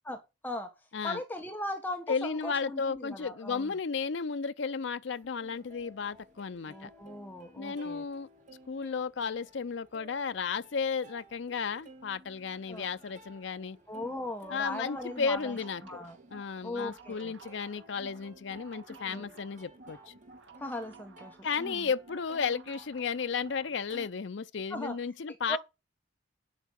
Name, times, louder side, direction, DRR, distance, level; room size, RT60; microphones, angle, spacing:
voice 1, 0.0-0.7 1.0-3.7 6.7-8.0 12.7-12.9 13.9-15.6 15.8-16.2 16.6-17.3 18.9-19.3 20.6-21.9 24.7-24.9 25.5-25.6, left 1 dB, 10° left, 1.5 m, -38 dB
voice 2, 2.1-6.9 7.6-8.3 8.7-13.8 14.5-15.8 16.3-20.1 21.4-25.6, left 5 dB, 65° left, 0.5 m, -34 dB
Plucked string instrument, 5.1-24.1, right 1 dB, 40° right, 2.7 m, -56 dB
sound 1, 14.8-23.7, right 3 dB, 65° right, 2.2 m, -54 dB
9.2 x 8.2 x 5.9 m
head